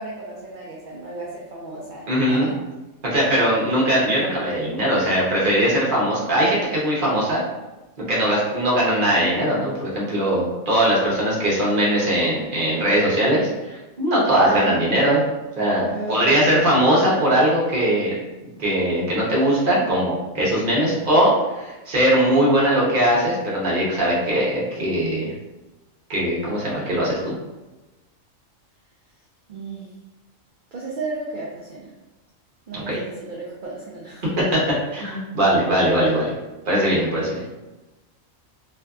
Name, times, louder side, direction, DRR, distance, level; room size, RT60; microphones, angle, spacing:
voice 1, 0.0-2.5 14.4-15.0 15.9-16.5 29.5-29.9 30.7-31.9 32.7-34.3, right 2 dB, 80° right, -5 dB, 0.4 m, -33 dB
voice 2, 2.1-2.5 3.0-7.4 8.1-15.2 15.6-18.1 18.6-25.3 26.1-27.3 32.7-33.0 34.9-36.3 36.7-37.4, right 1 dB, 50° right, -5 dB, 0.8 m, -20 dB
2.6 x 2.4 x 2.2 m, 1.1 s
omnidirectional pair, 1.4 m